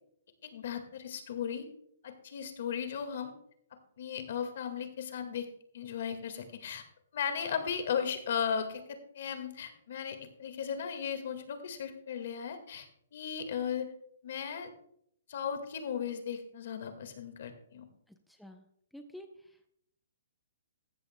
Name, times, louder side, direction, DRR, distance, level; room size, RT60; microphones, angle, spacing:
voice 1, 0.4-1.7 2.0-3.3 4.0-5.5 5.7-6.8 7.1-12.9 13.1-13.9 14.2-14.7 15.3-17.8, left 7 dB, 55° left, 8 dB, 1.8 m, -36 dB
voice 2, 18.1-18.7 18.9-19.7, equal, ahead, 4 dB, 0.6 m, -50 dB
14.5 x 13.5 x 2.2 m, 0.69 s
hypercardioid pair, 165°, 0 cm